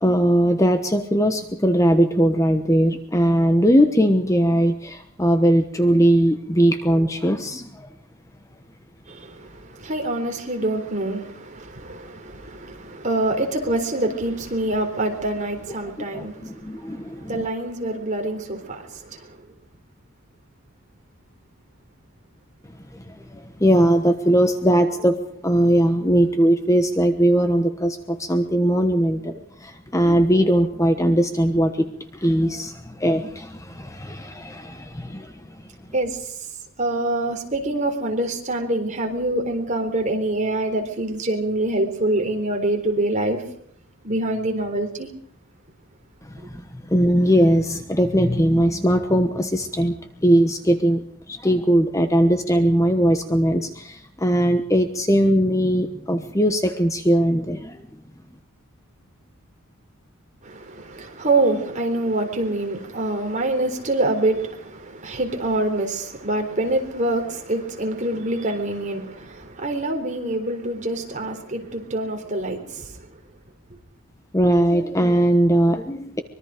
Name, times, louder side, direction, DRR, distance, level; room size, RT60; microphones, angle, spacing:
voice 1, 0.0-7.9 16.1-17.5 22.9-25.2 25.4-31.8 32.1-35.3 46.4-49.9 50.2-51.0 51.3-57.8 74.3-76.2, equal, 15° left, 1.2 m, -20 dB
voice 2, 9.1-19.4 35.9-36.3 36.8-43.4 44.0-45.1 60.4-73.1 73.7-73.8, right 2 dB, 35° right, 3.9 m, -25 dB
24.5 x 22.5 x 5.1 m
head